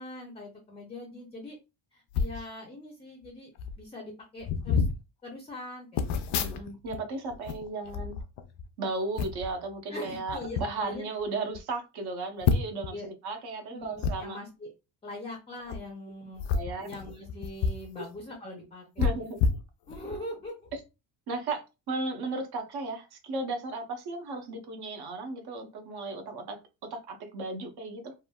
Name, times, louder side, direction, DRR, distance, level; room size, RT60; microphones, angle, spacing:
voice 1, 0.0-1.6 1.9-3.5 3.8-4.8 5.2-6.7 9.9-11.0 12.9-13.1 13.7-14.7 15.0-16.4 16.8-19.3 19.9-20.5, left 1 dB, 15° left, 0.5 m, -42 dB
sound 1, 2.1-2.4 3.2-3.3 3.6-3.8 4.4-5.0 6.0-7.0 7.3-8.7 9.2-9.5 10.3-10.7 11.2-11.3 11.5-11.6 12.4-12.9 14.0-14.1 15.6-15.8 16.4-17.9 18.2-18.3 19.0-20.2 20.7-20.8, left 5 dB, 65° left, 0.5 m, -29 dB
voice 2, 6.3-8.1 8.8-14.4 16.5-16.9 19.0-19.4 21.3-28.1, right 3 dB, 60° right, 0.8 m, -35 dB
3.2 x 2.2 x 2.2 m
cardioid pair, 170°, 43 cm